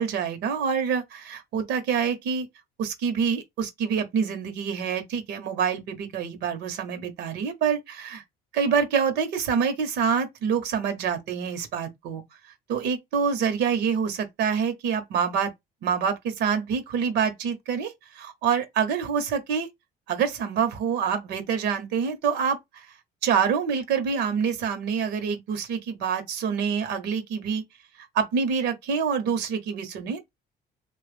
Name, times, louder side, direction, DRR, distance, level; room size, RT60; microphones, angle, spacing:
voice 1, 0.0-2.5 2.8-8.2 8.5-12.2 12.7-15.5 15.8-19.7 20.1-22.9 23.2-27.6 28.0-30.3, right 6 dB, 80° right, 1.0 m, -26 dB
3.1 x 2.4 x 3.4 m
cardioid pair, 110°, 17 cm